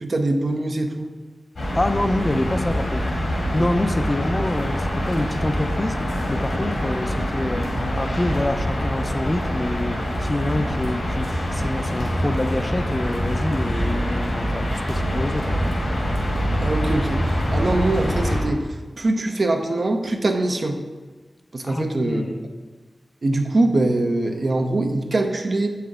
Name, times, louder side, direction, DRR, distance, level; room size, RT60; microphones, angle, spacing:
voice 1, 0.0-1.1 16.6-18.7 19.0-20.8 21.5-22.3 23.2-25.7, right 2 dB, 60° right, 4 dB, 0.7 m, -23 dB
sound 1, 1.6-18.4, equal, 80° left, 2.1 m, -25 dB
voice 2, 1.7-3.1 3.5-15.6 21.6-22.4, left 1 dB, 30° left, 7 dB, 0.5 m, -26 dB
7.6 x 5.7 x 3.6 m, 1.3 s
cardioid pair, 55°, 0 cm